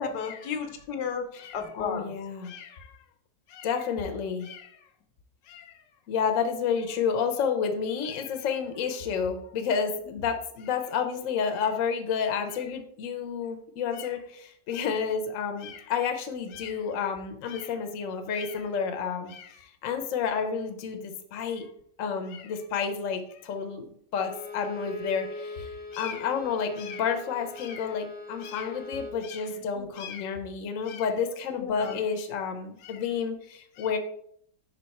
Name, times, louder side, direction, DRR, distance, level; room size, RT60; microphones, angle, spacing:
voice 1, 0.0-1.3 1.5-2.1 29.6-29.9 31.6-32.0, left 6 dB, 85° left, 6 dB, 1.4 m, -33 dB
voice 2, 1.3-3.0 3.5-4.8 5.4-5.8 6.1-21.7 22.0-34.0, left 6 dB, 60° left, 6 dB, 1.0 m, -30 dB
Bowed string instrument, 24.2-29.2, left 2 dB, 15° left, 0.4 m, -40 dB
5.1 x 4.4 x 4.2 m, 0.65 s
omnidirectional pair, 1.8 m